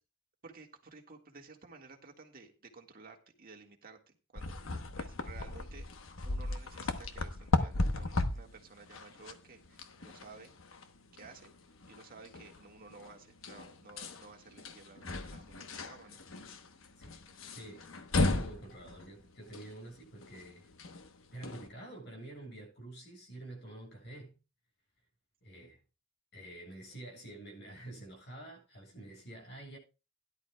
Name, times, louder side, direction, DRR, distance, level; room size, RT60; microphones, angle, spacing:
voice 1, 0.4-4.6 5.0-5.9 6.2-10.5 11.1-11.5 11.9-16.2, right 4 dB, 50° right, 1.8 m, -54 dB
sound 1, 4.3-21.7, left 2 dB, 85° left, 1.1 m, -37 dB
voice 2, 17.5-17.8 18.1-20.7 21.3-24.3 25.4-25.8 26.3-29.8, right 1 dB, 60° left, 7.5 m, -48 dB
17.0 x 11.0 x 2.3 m
head